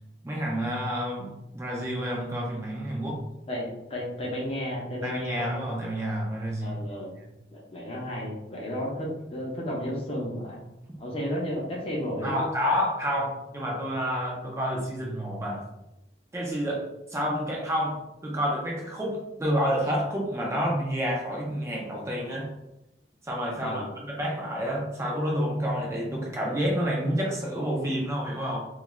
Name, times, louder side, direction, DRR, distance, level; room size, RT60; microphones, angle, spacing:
voice 1, 0.2-3.2 5.0-6.8 12.2-15.6 16.3-16.8 17.1-22.5 23.2-28.7, equal, 15° right, -2 dB, 0.5 m, -29 dB
voice 2, 3.5-5.5 6.6-7.2 7.5-10.6 11.0-12.5 23.6-24.0, equal, 35° left, -2 dB, 0.7 m, -33 dB
2.6 x 2.4 x 3.0 m, 0.90 s
head